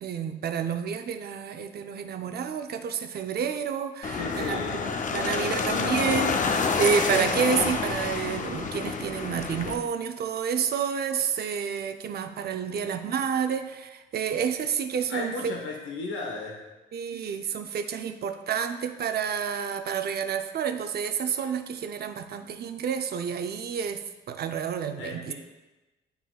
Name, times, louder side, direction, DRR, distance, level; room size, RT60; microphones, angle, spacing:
voice 1, 0.0-15.5 16.9-25.3, right 7 dB, 55° right, 8 dB, 0.5 m, -29 dB
sound 1, 4.0-9.7, left 4 dB, 40° left, 0.6 m, -28 dB
voice 2, 4.2-5.9 15.1-16.6 25.0-25.3, left 3 dB, 75° left, 0 dB, 1.2 m, -35 dB
11.0 x 3.9 x 2.3 m, 1.1 s
cardioid pair, 90°, 20 cm